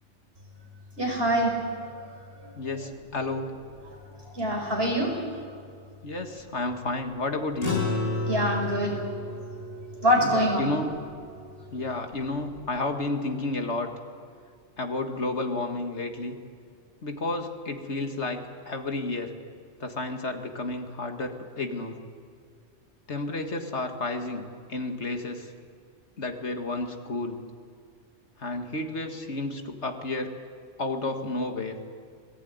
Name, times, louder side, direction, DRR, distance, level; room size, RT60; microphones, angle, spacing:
voice 1, 1.0-1.5 4.3-5.2 8.3-9.0 10.0-10.7, equal, 55° right, 0 dB, 6.1 m, -24 dB
voice 2, 2.5-3.5 6.0-7.8 10.2-11.0 11.7-13.9 14.8-16.4 17.0-19.3 19.8-22.0 23.1-25.5 26.2-27.4 28.4-30.3 30.8-31.8, left 2 dB, 65° left, 5 dB, 2.2 m, -31 dB
sound 1, 7.6-12.3, left 2 dB, 90° left, 4.1 m, -33 dB
27.0 x 20.0 x 9.5 m, 2.3 s
omnidirectional pair, 1.2 m